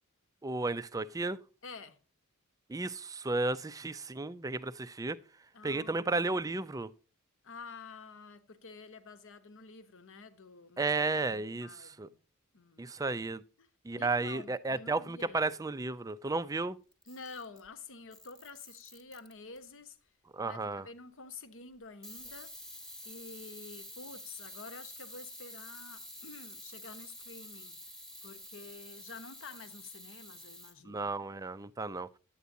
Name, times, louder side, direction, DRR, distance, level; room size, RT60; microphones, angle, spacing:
voice 1, 0.4-1.4 2.7-5.2 5.6-6.9 10.8-12.1 12.8-13.4 13.8-16.8 20.3-20.8 30.9-32.1, right 3 dB, 15° right, 0.4 m, -33 dB
voice 2, 1.6-2.0 5.5-6.5 7.4-12.2 12.5-12.9 13.6-13.7 14.0-15.5 17.0-20.0 20.4-22.5 23.0-27.9 28.2-31.1, left 4 dB, 60° left, 1.0 m, -49 dB
Camera, 16.9-17.7 18.1-19.6 22.0-30.8, equal, ahead, 1.1 m, -49 dB
10.0 x 8.2 x 2.6 m
head